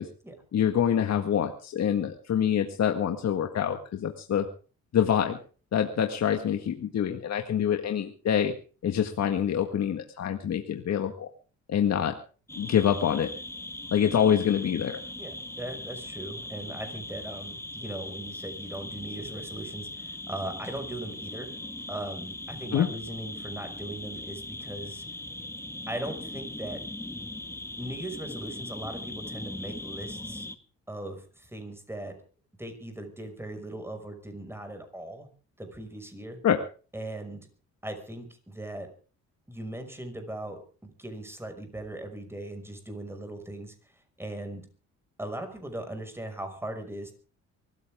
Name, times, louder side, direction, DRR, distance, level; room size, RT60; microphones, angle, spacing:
voice 1, 0.5-4.5 4.9-5.4 5.7-8.5 8.8-11.3 11.7-12.1 12.6-13.3 13.9-15.0 22.7-22.9 36.4-36.6, left 9 dB, 60° left, 5 dB, 1.8 m, -26 dB
sound 1, 12.5-30.6, left 2 dB, 10° left, 1.4 m, -39 dB
voice 2, 15.2-21.5 21.9-25.0 25.9-26.8 27.8-30.5 30.9-32.1 32.6-35.3 35.6-36.4 36.9-37.5 37.8-38.9 39.5-44.6 45.2-47.1, right 1 dB, 10° right, 6 dB, 5.8 m, -39 dB
24.0 x 14.5 x 3.7 m, 0.39 s
cardioid pair, 90°, 30 cm